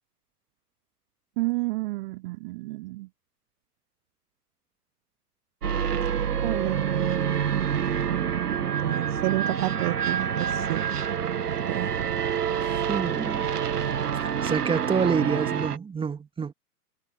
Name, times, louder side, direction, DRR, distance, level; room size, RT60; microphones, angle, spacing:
voice 1, 1.4-3.1 6.4-10.8 11.7-11.9, right 21 dB, 30° right, 0.8 m, -31 dB
sound 1, 5.6-15.8, right 8 dB, 75° right, 2.4 m, -27 dB
voice 2, 12.9-13.5 14.4-16.5, right 6 dB, 10° right, 2.8 m, -27 dB
figure-of-eight pair, 120°, 47 cm